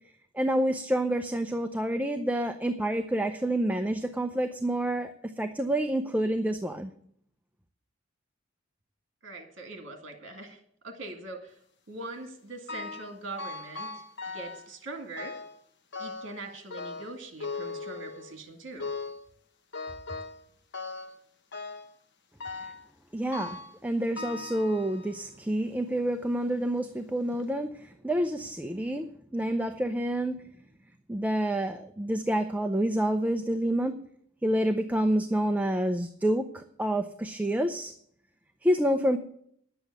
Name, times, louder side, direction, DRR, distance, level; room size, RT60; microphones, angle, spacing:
voice 1, 0.3-6.9 22.6-22.7 23.1-30.3 31.1-34.0 34.4-37.9 38.6-39.2, right 1 dB, 10° right, 7 dB, 0.6 m, -28 dB
voice 2, 9.2-11.6 11.9-14.0 14.3-15.4 16.0-18.9, right 2 dB, 60° right, 5 dB, 2.0 m, -42 dB
sound 1, 12.7-13.1 13.4-14.7 15.2-15.6 15.9-16.4 16.7-18.4 18.8-19.3 19.7-20.4 20.7-21.2 21.5-21.9 22.4-22.8 23.3-23.8 24.2-25.2 25.9-26.0 26.8-26.9 27.3-27.4, left 4 dB, 60° left, 1.2 m, -39 dB
10.0 x 7.9 x 8.1 m, 0.67 s
head